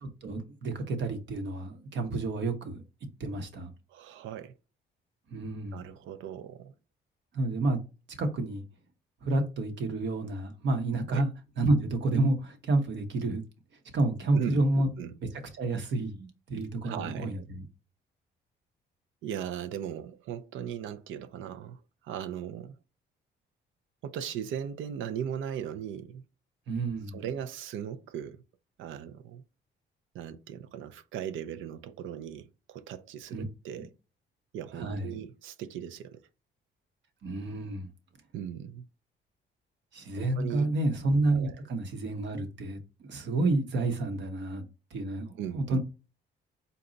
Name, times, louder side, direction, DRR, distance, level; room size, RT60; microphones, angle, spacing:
voice 1, 0.0-2.8 3.2-3.7 5.3-5.9 7.3-7.8 8.2-8.6 9.2-11.3 11.6-13.4 13.9-14.9 15.6-17.6 26.7-27.2 33.3-33.4 33.8-33.9 34.7-35.2 37.2-37.9 39.9-44.6 44.9-45.8, right 2 dB, 65° right, 0.9 m, -29 dB
voice 2, 3.9-4.5 5.7-6.7 11.1-11.2 14.3-15.2 16.8-17.4 19.2-21.8 22.0-22.8 24.0-26.2 27.1-28.4 28.8-29.4 30.1-33.9 34.5-36.2 38.3-38.8 40.2-40.7 41.3-41.6 45.4-45.8, right 9 dB, 80° right, 0.4 m, -38 dB
4.0 x 2.3 x 3.8 m
cardioid pair, 90°, 20 cm